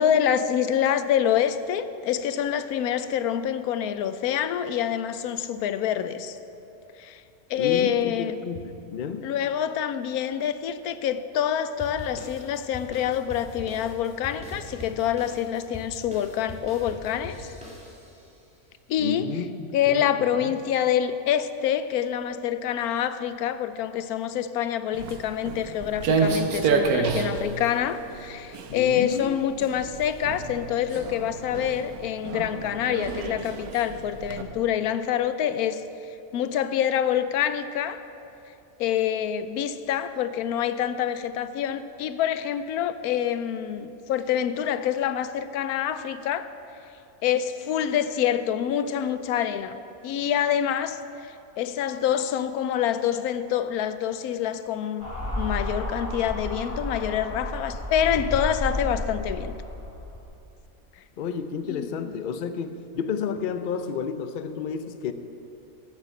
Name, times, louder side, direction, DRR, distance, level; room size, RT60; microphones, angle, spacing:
voice 1, 0.0-6.4 7.0-7.2 7.5-8.4 9.2-17.5 18.9-19.4 19.7-35.8 36.3-38.0 38.8-46.5 47.2-49.8 50.0-55.1 55.3-59.6 61.7-62.1, left 9 dB, 90° left, 12 dB, 1.1 m, -26 dB
voice 2, 7.6-9.3 19.0-20.5 28.7-29.4 61.2-65.1, left 6 dB, 55° left, 9 dB, 0.6 m, -31 dB
sound 1, 11.8-18.3, left 1 dB, 5° right, 2.2 m, -42 dB
Walk footsteps, 24.9-34.4, right 5 dB, 90° right, 1.3 m, -29 dB
sound 2, 55.0-60.2, left 1 dB, 15° left, 3.3 m, -32 dB
14.5 x 6.8 x 7.1 m, 2.8 s
omnidirectional pair, 1.5 m